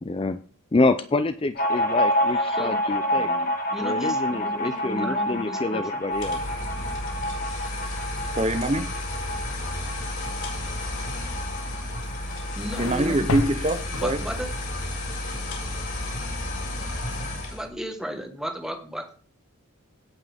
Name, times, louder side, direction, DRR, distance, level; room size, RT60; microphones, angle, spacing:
voice 1, 0.0-0.4 0.7-3.3 3.8-6.4, left 2 dB, 25° left, 10 dB, 0.4 m, -26 dB
sound 1, 1.6-14.7 15.0-15.1 15.3-16.1, equal, 40° left, 1.7 m, -29 dB
voice 2, 2.4-5.9 12.5-13.3 13.9-14.5 17.5-19.2, equal, 5° right, 4 dB, 1.3 m, -35 dB
sound 2, 6.1-17.7, left 1 dB, 60° left, 4.8 m, -32 dB
voice 3, 8.3-8.9 12.8-14.2, right 1 dB, 30° right, 9 dB, 0.8 m, -24 dB
sound 3, 12.0-14.7, left 3 dB, 85° left, 0.8 m, -33 dB
17.0 x 5.9 x 3.5 m, 0.40 s
head